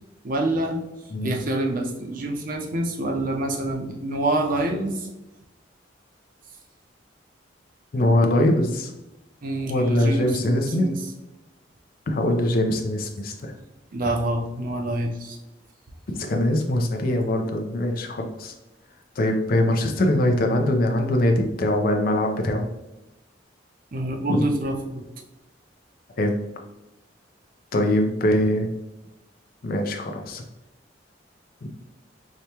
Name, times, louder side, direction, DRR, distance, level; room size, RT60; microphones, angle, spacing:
voice 1, 0.2-0.8 1.2-5.1 9.4-11.0 13.9-15.4 23.9-25.0, right 1 dB, 50° right, 3 dB, 0.6 m, -26 dB
voice 2, 7.9-8.9 9.7-10.9 12.1-13.5 16.1-18.5 19.2-22.7 24.3-24.5 26.2-26.4 27.7-28.7 29.6-30.4 31.6-31.7, left 1 dB, 50° left, 3 dB, 0.5 m, -22 dB
4.9 x 2.2 x 2.8 m, 0.94 s
head